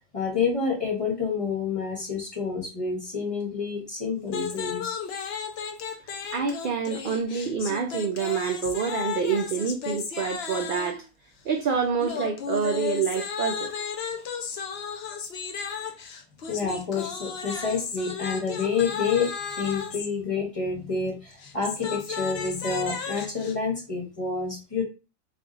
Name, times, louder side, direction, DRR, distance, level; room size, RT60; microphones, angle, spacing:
voice 1, 0.1-5.0 16.5-24.8, left 5 dB, 25° left, 1.2 m, -28 dB
sound 1, 4.3-11.0 12.0-20.1 21.3-23.5, left 6 dB, 60° left, 0.8 m, -34 dB
voice 2, 6.3-11.1 11.5-13.8, right 6 dB, 60° right, 0.5 m, -27 dB
3.4 x 2.4 x 3.8 m
omnidirectional pair, 1.4 m